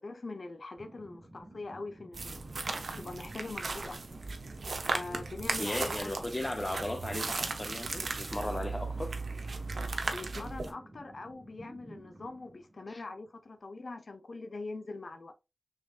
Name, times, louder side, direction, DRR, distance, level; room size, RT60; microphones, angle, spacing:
voice 1, 0.0-2.4 2.9-4.2 4.8-6.1 10.1-15.3, left 3 dB, 70° left, 0.8 m, -43 dB
sound 1, 0.8-13.4, right 1 dB, 45° right, 1.7 m, -53 dB
sound 2, 2.1-10.7, right 3 dB, 75° right, 0.8 m, -36 dB
voice 2, 5.6-9.2 12.9-13.0, left 1 dB, 30° left, 0.6 m, -36 dB
5.0 x 3.5 x 2.4 m
cardioid pair, 50°, 0 cm